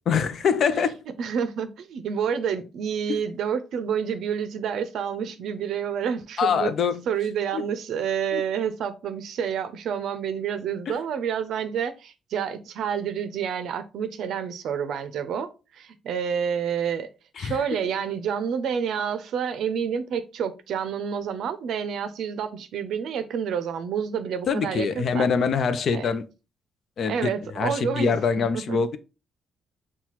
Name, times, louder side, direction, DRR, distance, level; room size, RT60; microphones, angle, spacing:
voice 1, 0.1-1.0 6.4-7.0 7.5-7.6 8.3-8.4 17.4-17.6 24.5-26.2 27.0-27.3 27.6-29.0, left 6 dB, 60° left, 0.5 m, -24 dB
voice 2, 1.2-6.7 7.1-17.1 17.4-25.3 25.9-26.1 27.1-28.8, right 7 dB, 75° right, 0.5 m, -29 dB
5.6 x 2.2 x 3.0 m
cardioid pair, 90°, 0 cm